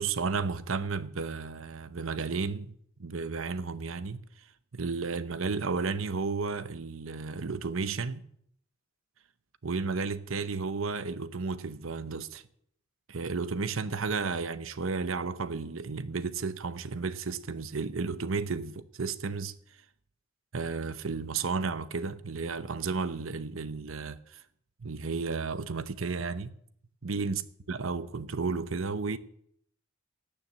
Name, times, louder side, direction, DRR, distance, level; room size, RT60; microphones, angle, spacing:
voice 1, 0.0-4.2 4.7-8.2 9.6-12.4 13.1-19.5 20.5-24.4 24.8-26.6 27.0-27.4 27.7-29.2, right 4 dB, 85° right, 0.8 m, -33 dB
18.0 x 7.0 x 7.2 m
head